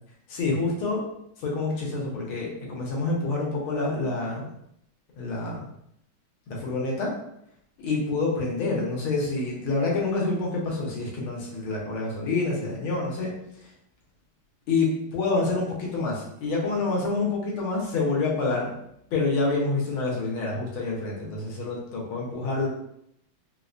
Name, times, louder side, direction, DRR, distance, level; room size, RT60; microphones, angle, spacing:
voice 1, 0.3-1.0 1.4-4.5 5.2-5.7 6.5-7.1 7.8-13.7 14.7-18.7 19.1-22.7, left 3 dB, 80° left, -3 dB, 1.8 m, -27 dB
4.5 x 2.1 x 2.5 m, 0.74 s
omnidirectional pair, 2.3 m